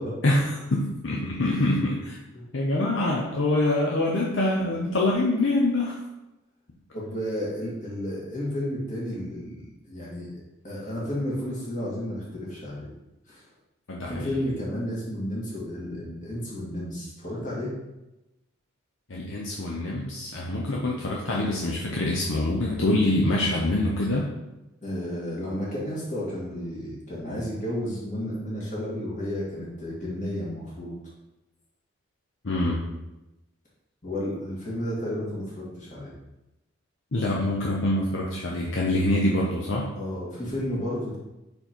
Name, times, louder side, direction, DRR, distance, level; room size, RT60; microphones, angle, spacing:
voice 1, 0.2-2.2 2.5-6.0 13.9-14.4 19.1-24.3 32.4-32.8 37.1-39.9, left 1 dB, 65° left, -3 dB, 0.8 m, -25 dB
voice 2, 6.9-10.4 10.6-12.9 13.3-13.4 14.0-17.7 20.4-20.6 24.8-30.9 34.0-36.1 39.9-41.2, equal, 35° left, -6 dB, 2.2 m, -32 dB
5.2 x 4.6 x 4.5 m, 0.97 s
head